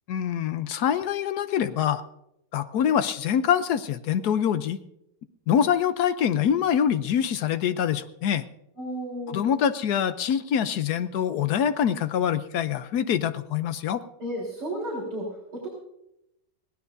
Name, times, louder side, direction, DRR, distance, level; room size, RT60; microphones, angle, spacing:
voice 1, 0.1-2.0 2.5-4.8 5.5-8.4 9.3-14.0, left 9 dB, 65° left, 12 dB, 1.2 m, -25 dB
voice 2, 8.8-9.5 14.2-15.7, right 1 dB, 60° right, -5 dB, 4.5 m, -33 dB
22.5 x 17.5 x 2.7 m, 0.82 s
omnidirectional pair, 2.0 m